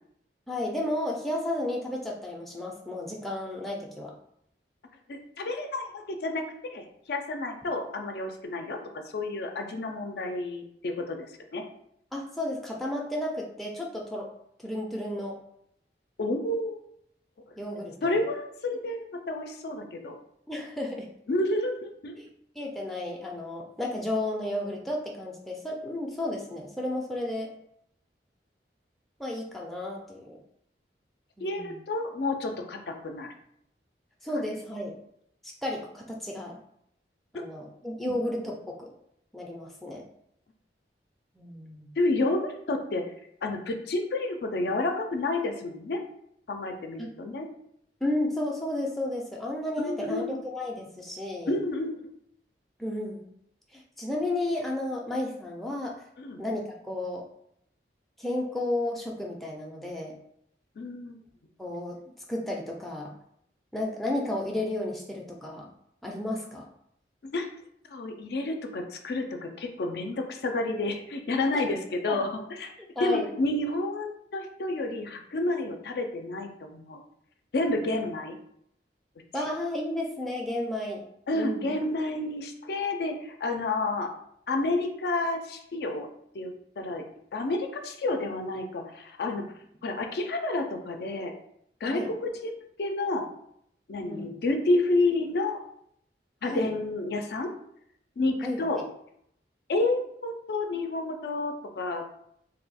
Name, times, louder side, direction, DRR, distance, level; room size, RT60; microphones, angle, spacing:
voice 1, 0.5-4.1 12.1-14.3 14.6-15.4 17.6-18.2 20.5-21.1 22.2-22.3 22.6-27.5 29.2-30.4 31.4-31.8 34.2-34.9 35.4-36.6 37.3-38.9 39.3-40.0 41.4-41.9 47.0-47.1 48.0-51.6 52.8-53.3 53.7-55.9 56.4-57.2 58.2-60.1 61.6-62.0 62.3-63.1 63.7-65.7 66.0-66.6 71.5-71.6 72.1-72.2 73.0-73.3 79.3-81.1 81.3-81.7 91.9-92.1 94.0-94.3 96.4-96.7 98.4-98.8, left 1 dB, ahead, -2 dB, 0.4 m, -32 dB
voice 2, 5.1-8.8 9.1-11.3 11.5-11.6 16.2-16.8 18.0-20.2 21.3-22.1 31.4-33.3 38.0-38.1 42.0-43.0 43.4-46.0 46.5-47.5 49.8-50.4 51.5-52.0 56.2-56.4 60.8-61.2 67.3-67.5 67.9-72.7 73.0-77.0 77.5-78.4 81.3-84.1 84.5-86.1 86.3-87.1 87.3-89.5 89.8-91.3 91.8-92.5 92.8-93.3 93.9-95.6 96.4-97.5 98.2-98.8 99.7-102.1, left 2 dB, 65° left, 5 dB, 0.4 m, -30 dB
2.7 x 2.2 x 4.1 m, 0.72 s
head